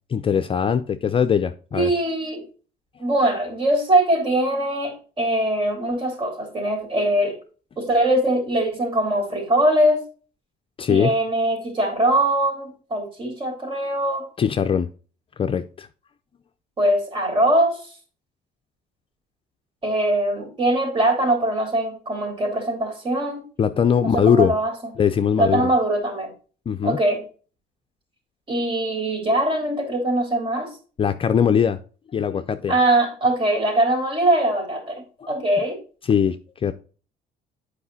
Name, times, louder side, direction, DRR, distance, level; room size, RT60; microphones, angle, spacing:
voice 1, 0.1-1.9 10.8-11.1 14.4-14.9 15.4-15.9 23.6-24.5 25.0-25.7 26.7-27.0 31.0-31.8 32.1-32.8 35.2-35.3 36.0-36.4 36.6-36.7, left 7 dB, 30° left, 8 dB, 0.5 m, -20 dB
voice 2, 1.7-2.4 3.0-7.3 7.8-10.0 10.9-14.3 16.8-17.8 19.8-23.4 24.0-24.7 25.4-26.3 26.8-27.2 28.5-30.7 32.7-35.8, right 1 dB, 30° right, 3 dB, 3.7 m, -22 dB
8.5 x 5.0 x 4.0 m, 0.37 s
cardioid pair, 110°, 17 cm